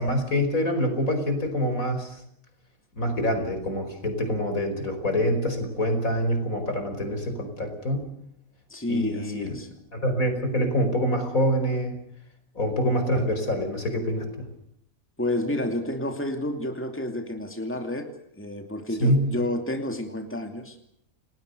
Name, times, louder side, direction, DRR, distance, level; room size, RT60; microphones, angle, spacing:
voice 1, 0.0-2.2 3.0-8.1 8.9-9.6 9.9-12.0 12.6-14.3 19.0-19.2, equal, 70° left, 6 dB, 5.5 m, -25 dB
voice 2, 8.7-9.7 15.2-20.8, left 1 dB, 10° left, 5 dB, 2.6 m, -30 dB
30.0 x 19.5 x 6.7 m, 0.72 s
omnidirectional pair, 1.5 m